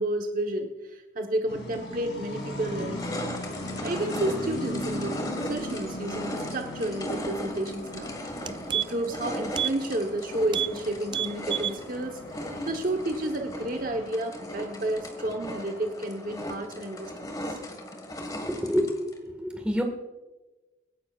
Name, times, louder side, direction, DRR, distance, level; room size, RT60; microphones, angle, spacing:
voice 1, 0.0-3.4 3.8-8.2 8.7-17.6, right 1 dB, 45° right, 3 dB, 1.0 m, -31 dB
sound 1, 1.5-14.1, left 1 dB, 70° left, 2.6 m, -39 dB
sound 2, 1.7-1.8 2.4-19.2, left 1 dB, 20° left, 1.6 m, -38 dB
sound 3, 7.8-8.0 8.3-9.1 9.5-9.8 10.1-10.2 10.5-10.8 11.1-11.8 12.2-12.3, right 10 dB, 25° right, 0.3 m, -30 dB
voice 2, 18.3-19.8, equal, 5° right, 3 dB, 1.6 m, -28 dB
24.5 x 10.5 x 2.4 m, 1.1 s
head